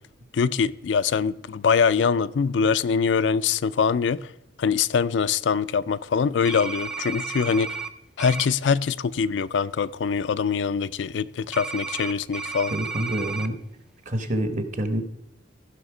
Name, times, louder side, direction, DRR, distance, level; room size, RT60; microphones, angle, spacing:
voice 1, 0.3-4.3 4.6-7.8 8.2-12.7, left 6 dB, 75° left, 0.4 m, -23 dB
sound 1, 6.4-7.9 8.2-8.5 11.5-13.5, right 5 dB, 5° right, 0.5 m, -33 dB
voice 2, 12.7-13.6 14.0-15.0, right 1 dB, 45° right, 1.1 m, -27 dB
15.5 x 5.7 x 4.9 m
head